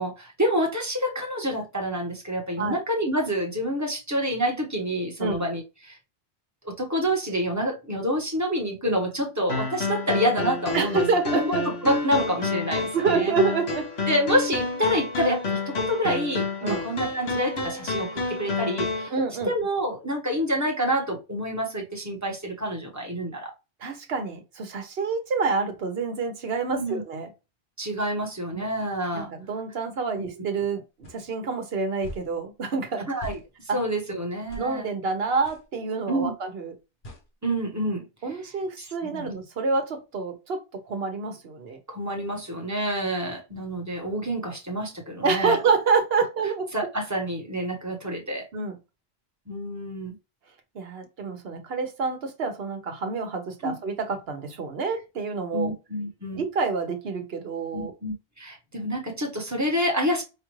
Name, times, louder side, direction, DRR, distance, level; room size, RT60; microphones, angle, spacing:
voice 1, 0.0-6.0 6.6-11.0 11.3-11.5 11.8-13.3 14.1-19.1 19.5-23.5 26.7-27.0 27.8-29.3 30.4-30.5 33.1-34.9 36.1-36.3 37.4-38.1 38.8-39.3 41.9-45.6 46.7-48.5 49.5-50.1 53.6-53.7 55.5-56.4 57.7-60.2, equal, 15° right, 1.0 m, -28 dB
sound 1, 9.5-19.1, left 3 dB, 75° left, 1.3 m, -29 dB
voice 2, 10.7-11.7 12.9-14.1 16.6-16.8 19.1-19.5 23.8-27.3 28.5-28.6 29.1-33.1 33.7-33.8 34.6-36.7 38.2-41.8 45.2-46.7 48.5-48.8 50.7-55.7 56.3-57.9, right 4 dB, 70° right, 1.1 m, -27 dB
sound 2, 31.0-31.2 32.0-32.3 33.2-33.4 34.5-34.7 35.4-35.6 37.0-37.3, right 1 dB, 55° left, 1.2 m, -40 dB
5.2 x 2.4 x 3.1 m
omnidirectional pair, 1.1 m